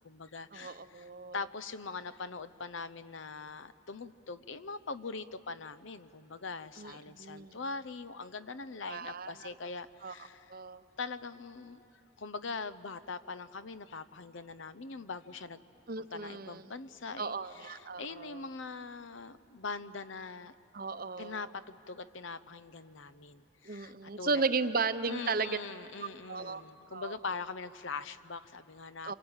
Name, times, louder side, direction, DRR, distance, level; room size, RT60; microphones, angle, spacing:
voice 1, 0.0-10.5 11.0-11.9 12.2-15.6 16.0-20.5 21.2-24.4 25.1-29.1, left 4 dB, 70° left, 14 dB, 0.8 m, -42 dB
voice 2, 0.5-1.4 6.8-7.6 8.8-9.5 10.0-10.8 15.9-16.6 17.2-18.5 20.7-21.5 23.6-25.6 26.3-26.6 26.9-27.2 29.0-29.1, right 4 dB, 45° right, 11 dB, 0.8 m, -35 dB
27.5 x 24.0 x 9.0 m, 3.0 s
head